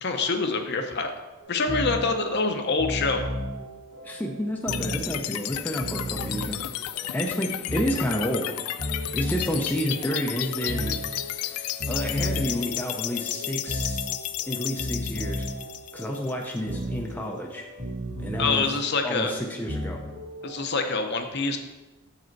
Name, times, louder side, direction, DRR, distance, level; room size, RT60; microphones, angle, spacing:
voice 1, 0.0-1.1 1.5-3.2 18.4-19.3 20.4-21.6, left 4 dB, 50° left, 5 dB, 0.7 m, -25 dB
sound 1, 1.4-20.6, equal, 80° right, 1.9 m, -35 dB
voice 2, 4.0-6.6 7.1-8.5 9.1-11.0 11.4-14.1 14.5-15.5 15.9-17.7 18.2-18.7 19.0-20.0, equal, 10° left, 0 dB, 0.5 m, -30 dB
sound 2, 4.7-16.7, left 13 dB, 80° left, 0.3 m, -33 dB
7.0 x 5.0 x 4.5 m, 1.1 s
head